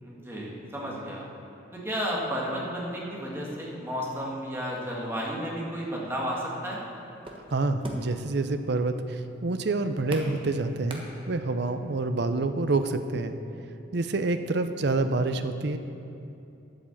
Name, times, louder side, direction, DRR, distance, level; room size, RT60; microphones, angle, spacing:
voice 1, 0.0-1.3 1.7-6.8, equal, 15° right, -4 dB, 2.0 m, -32 dB
sound 1, 6.8-11.7, right 1 dB, 30° right, 1.3 m, -43 dB
voice 2, 7.5-13.4 13.9-15.8, right 3 dB, 65° right, 9 dB, 0.6 m, -27 dB
9.9 x 8.7 x 7.3 m, 2.7 s
head